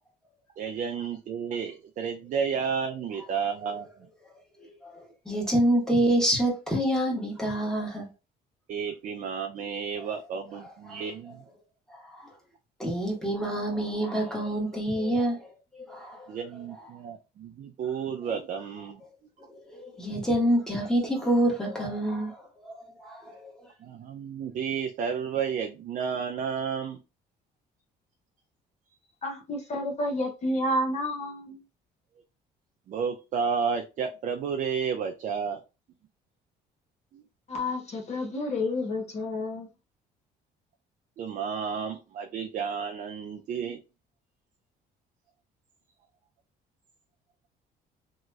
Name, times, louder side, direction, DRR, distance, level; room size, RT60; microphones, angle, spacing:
voice 1, 0.6-3.9 8.7-11.4 16.3-19.0 23.8-27.0 32.9-35.6 37.1-37.2 41.2-43.8, right 6 dB, 50° right, 0.4 m, -32 dB
voice 2, 4.6-8.1 10.9-11.0 11.9-12.3 12.8-16.3 16.7-16.9 19.5-23.5, right 1 dB, 5° left, 1.3 m, -27 dB
voice 3, 29.2-31.6 37.5-39.7, left 1 dB, 40° left, 1.0 m, -30 dB
3.0 x 2.9 x 2.3 m
cardioid pair, 110°, 17 cm